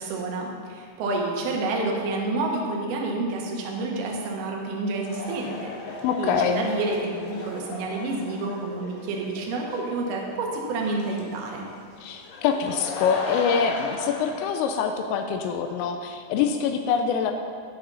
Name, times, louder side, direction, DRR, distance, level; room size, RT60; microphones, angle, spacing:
voice 1, 0.0-5.7 6.2-11.7, right 3 dB, 65° right, 0 dB, 2.7 m, -29 dB
sound 1, 5.1-14.4, left 3 dB, 70° left, 2.7 m, -37 dB
voice 2, 6.0-6.7 12.0-17.3, left 7 dB, 85° left, 5 dB, 3.2 m, -25 dB
19.5 x 6.8 x 4.1 m, 2.2 s
omnidirectional pair, 5.9 m